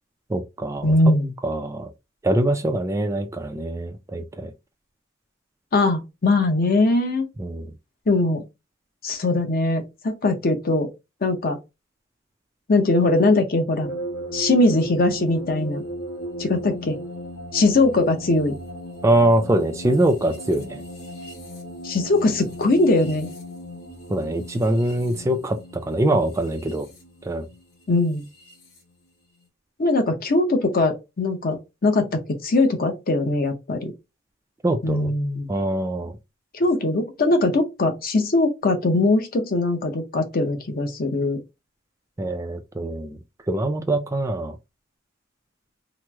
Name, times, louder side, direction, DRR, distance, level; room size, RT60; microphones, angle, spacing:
voice 1, 0.3-0.9 1.4-1.9 2.2-4.5 7.4-7.6 19.0-20.8 24.1-26.9 27.2-27.4 34.6-35.1 35.5-36.1 42.2-43.2 43.5-44.5, right 1 dB, 15° right, 0.3 m, -23 dB
voice 2, 0.8-1.3 5.7-7.3 8.1-8.4 9.0-10.9 11.2-11.6 12.7-13.9 14.3-15.8 16.4-17.0 17.5-18.5 21.8-23.3 27.9-28.2 29.8-33.9 34.8-35.5 36.5-41.4, left 2 dB, 45° left, 0.7 m, -21 dB
sound 1, 13.8-28.8, equal, 75° left, 1.1 m, -37 dB
3.0 x 2.0 x 3.3 m
head